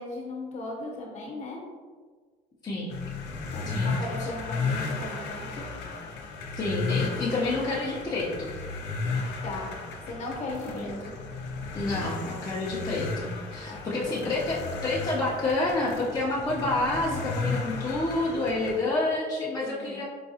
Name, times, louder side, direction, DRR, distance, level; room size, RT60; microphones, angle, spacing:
voice 1, 0.0-1.6 3.5-5.6 9.4-9.7 10.1-11.1 13.7-14.0 19.6-20.0, left 2 dB, 45° left, -1 dB, 0.9 m, -37 dB
voice 2, 2.6-3.0 3.7-4.3 6.6-8.6 10.7-10.9 11.7-20.0, left 2 dB, 20° left, -6 dB, 0.6 m, -29 dB
sound 1, 2.9-18.8, left 4 dB, 90° left, 0.5 m, -34 dB
4.7 x 2.3 x 2.7 m, 1.5 s
cardioid pair, 110°, 17 cm